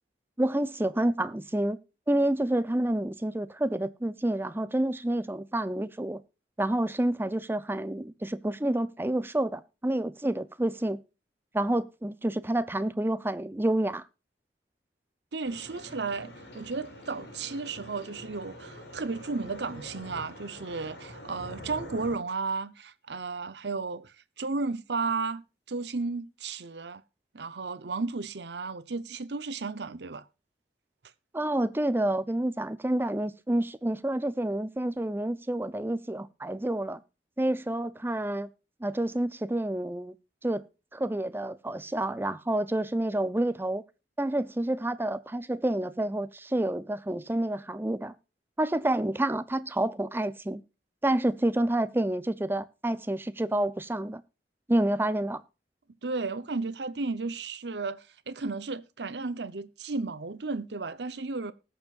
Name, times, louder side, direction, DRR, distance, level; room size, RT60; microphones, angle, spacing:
voice 1, 0.4-1.8 2.1-6.2 6.6-11.0 11.5-14.0 31.3-37.0 37.4-38.5 38.8-40.1 40.4-40.6 40.9-43.8 44.2-48.1 48.6-50.6 51.0-54.2 54.7-55.4, right 1 dB, 15° right, 0.6 m, -28 dB
voice 2, 15.3-27.0 27.3-30.3 56.0-61.5, right 4 dB, 70° right, 0.9 m, -34 dB
sound 1, 15.4-22.2, left 1 dB, 70° left, 4.4 m, -45 dB
19.5 x 7.0 x 2.5 m
head